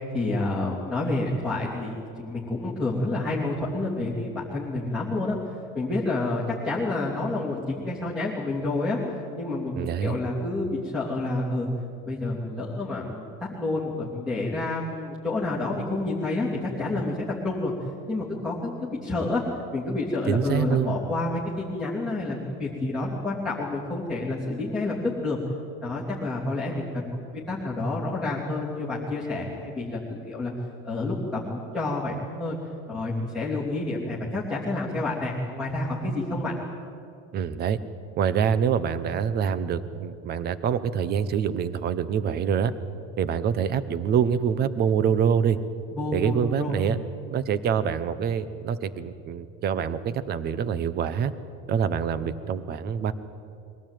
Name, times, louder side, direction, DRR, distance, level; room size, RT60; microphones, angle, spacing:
voice 1, 0.1-5.4 5.7-9.7 10.0-11.7 12.0-16.5 16.8-17.7 18.1-19.4 19.7-25.4 25.8-30.5 30.8-32.6 32.9-36.6 45.9-46.8, left 2 dB, ahead, -5 dB, 3.1 m, -29 dB
voice 2, 9.7-10.2 20.3-21.0 37.3-37.8 38.2-42.7 43.2-45.6 46.1-47.0 47.3-51.3 51.7-53.1, right 7 dB, 30° right, 15 dB, 1.0 m, -25 dB
22.5 x 17.5 x 9.3 m, 2.6 s
supercardioid pair, 155°, 32 cm